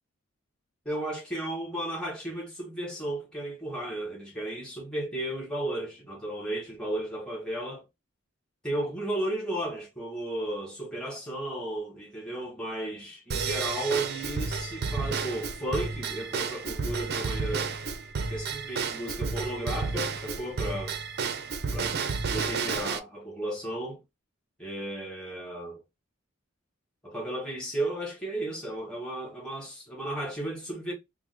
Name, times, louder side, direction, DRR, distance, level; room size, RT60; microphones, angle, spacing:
voice 1, 0.8-7.8 8.6-17.8 18.3-21.0 21.7-22.0 22.3-24.0 24.6-25.8 27.0-30.9, right 1 dB, 5° left, 1.2 m, -34 dB
Drum kit / Drum / Bell, 13.3-23.0, right 4 dB, 50° right, 0.4 m, -31 dB
3.2 x 2.1 x 3.2 m
head